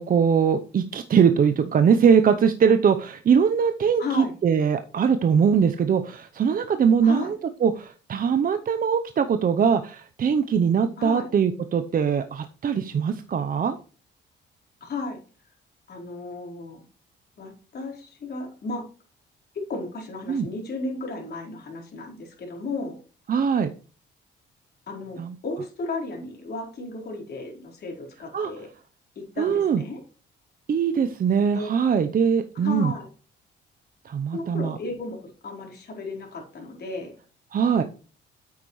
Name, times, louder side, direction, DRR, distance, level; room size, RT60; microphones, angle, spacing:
voice 1, 0.0-13.8 20.3-20.5 23.3-23.7 25.2-25.3 28.3-28.5 29.4-29.8 30.7-32.9 34.0-34.8 37.5-37.8, right 7 dB, 45° right, 8 dB, 0.8 m, -21 dB
voice 2, 4.0-4.3 7.0-7.3 11.0-11.3 14.8-15.2 15.9-16.8 17.4-18.8 19.5-23.0 24.9-28.7 29.2-30.0 31.5-31.7 32.6-33.1 34.3-37.1, left 3 dB, 55° left, -1 dB, 4.4 m, -34 dB
9.5 x 8.2 x 3.2 m, 0.38 s
cardioid pair, 90°, 20 cm